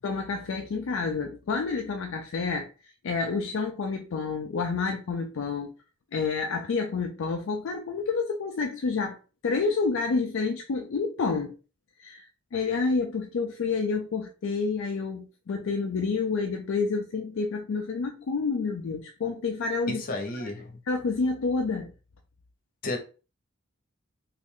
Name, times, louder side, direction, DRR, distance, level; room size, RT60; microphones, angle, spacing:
voice 1, 0.0-5.7 6.1-9.2 9.4-11.5 12.0-20.0 20.4-20.5 20.8-21.9, left 4 dB, 60° left, 0.4 m, -29 dB
voice 2, 19.9-20.7 22.8-23.0, left 2 dB, 45° left, 0.8 m, -32 dB
3.1 x 2.5 x 3.6 m
head